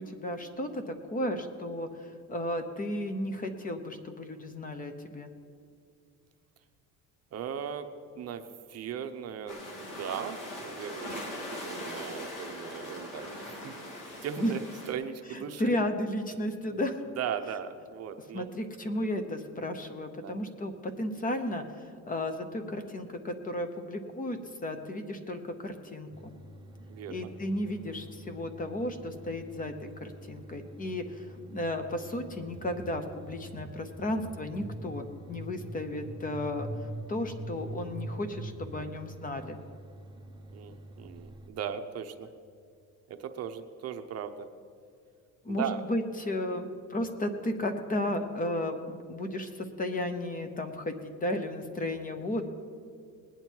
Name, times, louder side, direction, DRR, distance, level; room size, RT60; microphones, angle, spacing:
voice 1, 0.0-5.3 14.4-14.5 15.3-17.0 18.3-26.3 27.1-36.7 37.1-39.6 45.4-52.4, left 1 dB, 25° left, 8 dB, 0.9 m, -34 dB
voice 2, 7.3-7.9 8.1-15.7 16.6-16.8 17.2-18.5 20.2-20.4 26.9-27.3 40.5-42.3 43.1-44.5 45.5-45.8 46.5-46.6, right 8 dB, 45° right, 7 dB, 0.8 m, -38 dB
sound 1, 9.5-14.9, left 1 dB, 65° left, 2.7 m, -41 dB
sound 2, 26.1-41.5, right 1 dB, 15° right, 0.8 m, -49 dB
sound 3, 32.5-35.0 35.3-37.0 37.3-38.9, right 2 dB, 30° right, 1.4 m, -41 dB
20.0 x 9.1 x 4.5 m, 2.3 s
cardioid pair, 155°, 34 cm